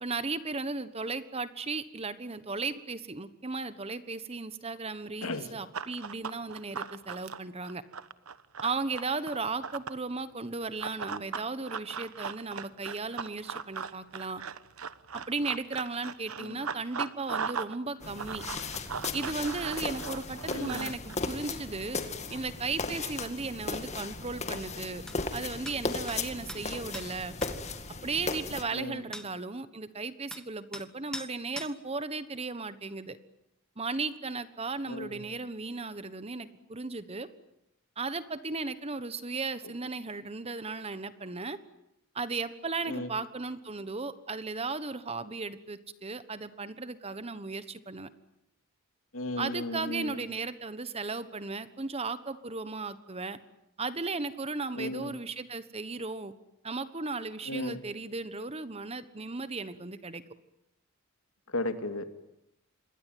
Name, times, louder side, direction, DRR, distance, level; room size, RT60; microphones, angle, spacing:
voice 1, 0.0-7.8 8.6-14.4 15.1-18.4 19.1-22.0 22.3-25.0 25.3-27.3 28.0-33.2 33.8-37.3 38.0-41.6 42.1-48.1 49.4-53.4 53.8-56.3 56.6-60.2, right 3 dB, 30° right, 13 dB, 1.2 m, -36 dB
Run, 5.7-10.0 10.8-17.8 18.0-21.2, right 6 dB, 80° right, 1.1 m, -38 dB
sound 1, 18.0-28.6, left 3 dB, 30° left, 2.1 m, -36 dB
voice 2, 20.5-20.9 28.7-29.0 34.9-35.2 42.9-43.1 49.1-50.2 54.8-55.1 57.5-57.8 61.5-62.1, left 2 dB, 70° left, 8 dB, 2.5 m, -35 dB
sound 2, 25.1-25.2 25.7-25.8 26.1-26.2 26.5-26.6 26.9-27.1 27.4-27.5 29.1-29.3 30.3-30.4 30.7-30.9 31.1-31.3 31.6-31.7, left 1 dB, 5° left, 1.3 m, -41 dB
27.0 x 21.5 x 9.4 m, 0.82 s
head